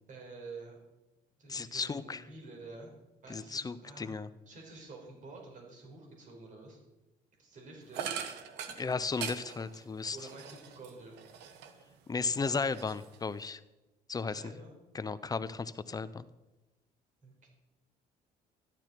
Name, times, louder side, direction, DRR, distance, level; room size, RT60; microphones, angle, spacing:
voice 1, 0.1-0.8 1.4-2.9 3.2-4.1 4.5-6.8 7.4-8.1 10.1-11.2 14.3-14.8 17.2-17.5, right 3 dB, 50° right, 0 dB, 4.7 m, -49 dB
voice 2, 1.5-2.2 3.3-4.3 8.8-10.2 12.1-13.6 14.1-14.5 14.9-16.3, left 4 dB, 20° left, 14 dB, 0.6 m, -35 dB
sound 1, 7.9-11.9 12.3-13.5, right 7 dB, 90° right, 1.3 m, -42 dB
13.5 x 11.5 x 4.6 m, 1.0 s
cardioid pair, 110°, 17 cm